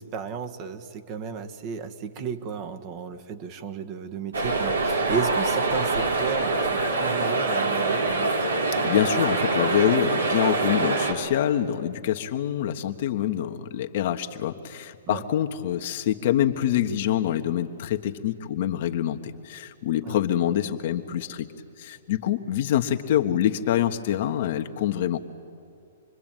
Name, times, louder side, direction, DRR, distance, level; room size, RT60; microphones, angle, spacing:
voice 1, 0.0-8.4 15.1-15.2 20.0-20.2, right 6 dB, 35° right, 7 dB, 1.6 m, -33 dB
sound 1, 4.3-11.1, right 3 dB, 90° right, 3.8 m, -24 dB
voice 2, 8.8-21.5 21.8-25.2, left 11 dB, 55° left, 6 dB, 1.4 m, -25 dB
27.0 x 21.5 x 9.2 m, 2.6 s
hypercardioid pair, 130°, 0 cm